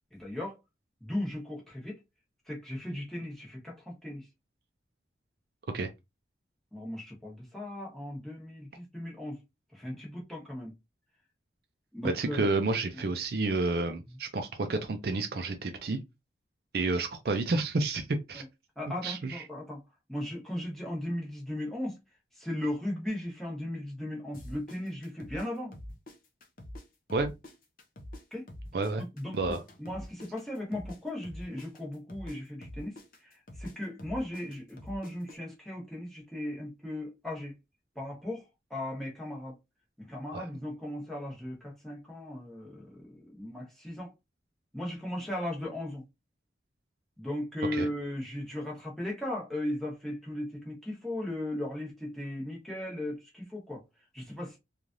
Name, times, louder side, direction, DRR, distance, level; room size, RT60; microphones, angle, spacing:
voice 1, 0.1-0.6 1.0-2.0 2.5-4.3 6.7-9.4 9.7-10.7 11.9-12.5 18.3-18.4 18.8-19.8 20.1-22.0 22.4-25.7 28.3-28.5 29.1-29.5 29.8-37.5 37.9-39.6 40.0-44.1 44.7-46.0 47.2-53.8 54.1-54.6, left 1 dB, ahead, 1.0 m, -37 dB
voice 2, 12.0-16.0 16.7-18.4 19.0-19.4 27.1-27.3 28.7-29.0 29.3-29.6 40.3-40.4 47.7-47.9, right 3 dB, 55° right, 0.4 m, -30 dB
sound 1, 24.3-26.8 27.1-31.0 31.2-35.4, left 1 dB, 50° left, 0.6 m, -45 dB
3.1 x 2.4 x 2.5 m
head